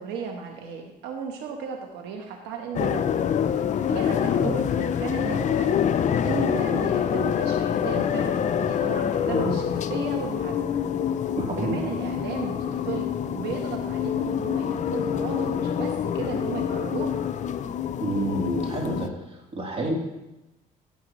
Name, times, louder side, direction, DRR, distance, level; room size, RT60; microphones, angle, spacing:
voice 1, 0.0-3.0 3.5-10.6 11.6-13.1 13.4-17.1, right 6 dB, 90° right, 2 dB, 1.2 m, -35 dB
sound 1, 2.8-19.1, left 8 dB, 45° left, 0.5 m, -26 dB
voice 2, 11.4-11.8 18.0-19.1 19.5-19.9, right 2 dB, 35° right, -2 dB, 3.1 m, -28 dB
16.0 x 7.3 x 3.1 m, 0.97 s
cardioid pair, 110°, 17 cm